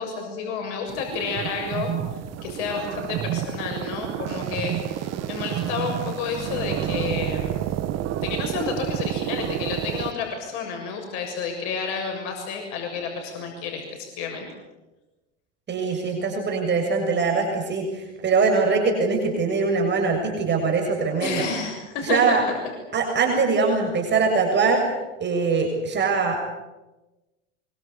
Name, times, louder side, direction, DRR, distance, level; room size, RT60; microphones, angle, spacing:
voice 1, 0.0-1.9 2.4-7.7 8.2-14.5 21.2-22.4, left 5 dB, 65° left, 2 dB, 7.1 m, -30 dB
sound 1, 0.9-10.1, right 11 dB, 45° right, 2.0 m, -29 dB
voice 2, 15.7-21.5 22.0-22.4 22.9-24.8 25.2-26.5, right 4 dB, 30° right, 2 dB, 7.0 m, -22 dB
25.5 x 24.5 x 8.5 m, 1.1 s
hypercardioid pair, 105°, 36 cm